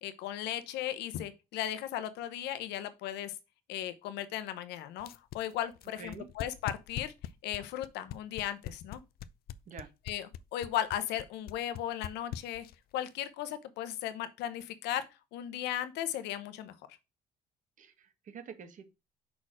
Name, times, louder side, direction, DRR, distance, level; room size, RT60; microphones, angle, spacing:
voice 1, 0.0-3.3 3.7-5.1 5.3-7.1 7.4-9.0 10.1-12.6 12.9-15.0 15.3-16.7, left 11 dB, 85° left, 0.9 m, -36 dB
sound 1, 5.0-12.9, left 11 dB, 65° left, 0.5 m, -41 dB
voice 2, 6.0-6.3 9.7-9.9 17.8-18.9, right 6 dB, 50° right, 1.4 m, -47 dB
6.0 x 4.3 x 4.8 m
cardioid pair, 110°, 17 cm